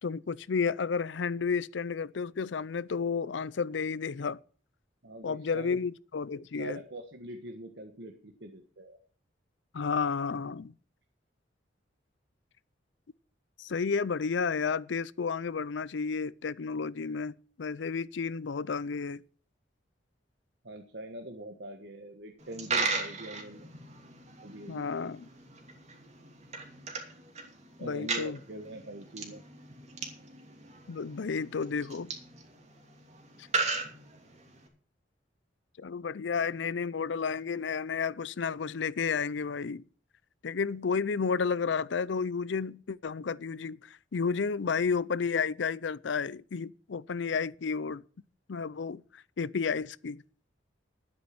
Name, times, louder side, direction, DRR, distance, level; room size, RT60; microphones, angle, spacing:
voice 1, 0.0-4.4 5.2-6.8 9.7-10.7 13.6-19.2 24.7-25.3 27.8-28.4 30.9-32.1 33.4-33.5 35.8-39.8 40.4-48.0 48.5-50.2, left 5 dB, 75° left, 0.5 m, -32 dB
voice 2, 5.0-5.8 6.5-9.0 20.6-23.7 24.4-24.9 27.8-29.4, right 1 dB, 65° right, 1.5 m, -43 dB
Coin (dropping), 22.4-34.7, right 4 dB, 40° right, 2.7 m, -37 dB
12.0 x 9.5 x 6.0 m
head